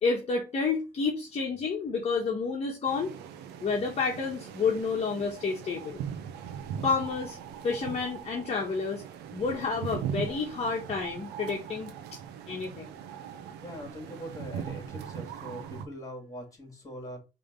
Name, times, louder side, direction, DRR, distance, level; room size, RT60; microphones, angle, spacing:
voice 1, 0.0-3.1 3.6-6.0 6.8-7.4 7.6-9.0 9.3-12.2 12.5-12.9, left 4 dB, 40° left, 1.5 m, -30 dB
sound 1, 2.9-15.9, right 8 dB, 90° right, 0.9 m, -40 dB
voice 2, 13.6-17.2, equal, 20° left, 3.1 m, -42 dB
5.1 x 3.6 x 5.6 m
cardioid pair, 110°, 17 cm